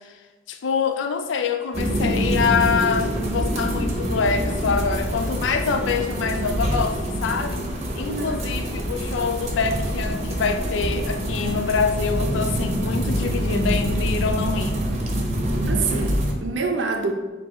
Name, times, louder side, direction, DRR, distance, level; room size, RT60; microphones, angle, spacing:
voice 1, 0.5-7.6 8.0-14.8, left 5 dB, 80° left, 0.4 m, -25 dB
sound 1, 1.7-16.3, equal, 35° right, 0.7 m, -25 dB
voice 2, 8.1-8.5 15.7-17.1, right 4 dB, 75° right, 0.6 m, -26 dB
4.7 x 2.4 x 4.2 m
head